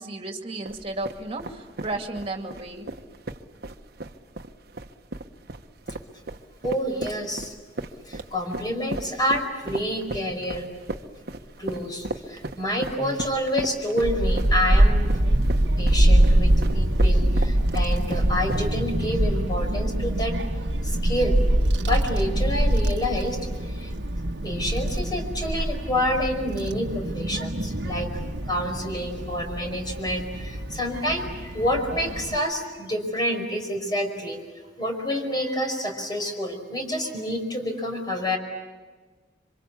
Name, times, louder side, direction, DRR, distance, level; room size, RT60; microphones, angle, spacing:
voice 1, 0.0-2.9, right 2 dB, 35° right, 4 dB, 2.5 m, -33 dB
sound 1, 0.7-19.0, right 2 dB, 60° right, 1.3 m, -36 dB
voice 2, 6.6-7.5 8.1-10.7 11.6-21.4 21.8-23.9 24.4-28.1 28.5-34.4 34.8-38.4, equal, 25° left, 4 dB, 5.2 m, -28 dB
Child speech kid speaking / Wind, 14.0-32.4, right 1 dB, 80° right, 1.3 m, -24 dB
27.5 x 25.5 x 8.5 m, 1.3 s
head